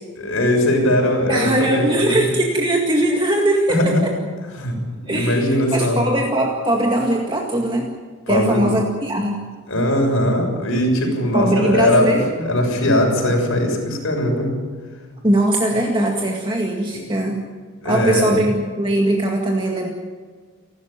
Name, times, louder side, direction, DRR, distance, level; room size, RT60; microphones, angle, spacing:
voice 1, 0.2-2.2 3.7-4.2 4.6-4.7 5.0-6.0 8.3-8.7 9.7-14.5 16.9-17.0 17.8-18.3, left 1 dB, 60° left, 2 dB, 6.8 m, -19 dB
voice 2, 1.3-4.1 5.1-7.9 8.3-9.4 11.3-12.3 15.2-17.5 17.8-19.9, right 1 dB, 20° right, 0 dB, 2.0 m, -20 dB
29.5 x 12.5 x 8.9 m, 1.5 s
head